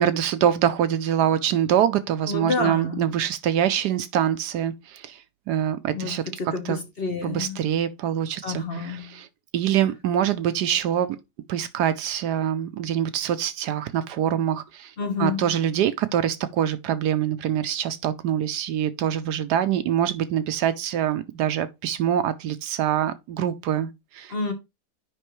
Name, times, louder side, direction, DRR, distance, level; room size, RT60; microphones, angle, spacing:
voice 1, 0.0-5.2 5.5-6.2 6.6-6.8 7.2-9.3 9.5-11.2 11.5-14.9 15.2-24.3, right 10 dB, 75° right, 1.1 m, -24 dB
voice 2, 2.3-3.1 5.9-7.6 8.4-9.2 15.0-15.5 24.3-24.5, left 4 dB, 40° left, 1.1 m, -29 dB
7.7 x 5.3 x 3.1 m
omnidirectional pair, 1.9 m